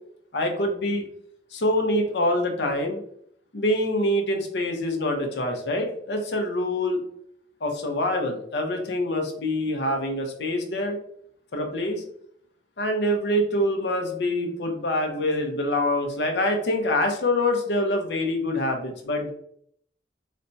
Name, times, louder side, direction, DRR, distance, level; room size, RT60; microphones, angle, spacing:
voice 1, 0.3-1.0 1.5-3.0 3.5-7.0 7.6-11.0 11.5-12.0 12.8-19.3, left 1 dB, 75° left, 3 dB, 0.7 m, -25 dB
4.1 x 2.2 x 2.6 m, 0.68 s
head